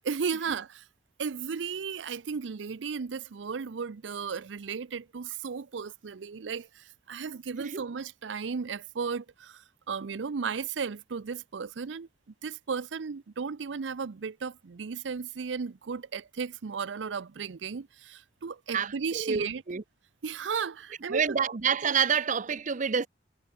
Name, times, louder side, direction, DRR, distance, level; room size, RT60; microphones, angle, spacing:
voice 1, 0.1-0.9 1.2-12.1 12.4-19.6 20.2-21.3, right 5 dB, 90° right, 0.5 m, -35 dB
voice 2, 18.7-19.8 21.1-23.1, right 6 dB, 45° right, 0.6 m, -28 dB
head